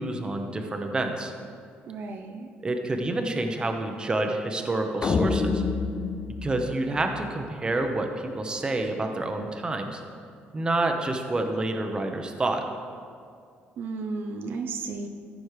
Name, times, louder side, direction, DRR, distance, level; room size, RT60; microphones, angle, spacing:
voice 1, 0.0-1.3 2.6-5.6 6.4-10.0 10.5-12.6, right 2 dB, 25° right, 4 dB, 0.9 m, -28 dB
voice 2, 1.9-2.5 13.8-15.1, right 4 dB, 65° right, 4 dB, 0.7 m, -33 dB
sound 1, 5.0-7.5, left 4 dB, 35° left, 0.6 m, -28 dB
14.0 x 5.2 x 4.9 m, 2.3 s
cardioid pair, 105°, 4 cm